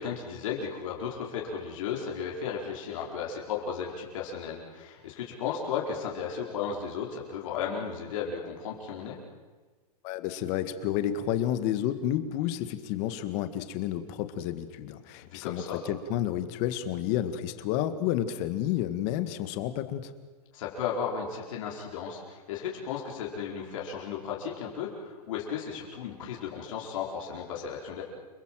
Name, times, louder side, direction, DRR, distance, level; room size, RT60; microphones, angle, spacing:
voice 1, 0.0-9.2 15.3-15.8 20.5-28.0, left 7 dB, 55° left, -2 dB, 4.9 m, -35 dB
voice 2, 10.0-20.1, left 11 dB, 35° left, 10 dB, 1.8 m, -30 dB
29.5 x 20.5 x 7.6 m, 1.3 s
hypercardioid pair, 160°, 20 cm